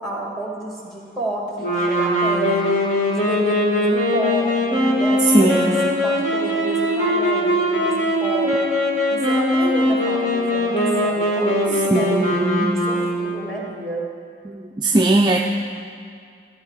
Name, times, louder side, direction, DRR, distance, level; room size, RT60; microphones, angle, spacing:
voice 1, 0.0-2.9 3.1-8.7 9.1-12.2 12.9-14.1, right 1 dB, ahead, -3 dB, 2.1 m, -30 dB
sound 1, 1.6-13.5, left 1 dB, 40° left, 1.9 m, -21 dB
voice 2, 5.3-5.9 11.9-12.8 14.5-15.4, right 2 dB, 25° right, 1 dB, 0.4 m, -19 dB
15.5 x 9.3 x 4.9 m, 2.3 s
head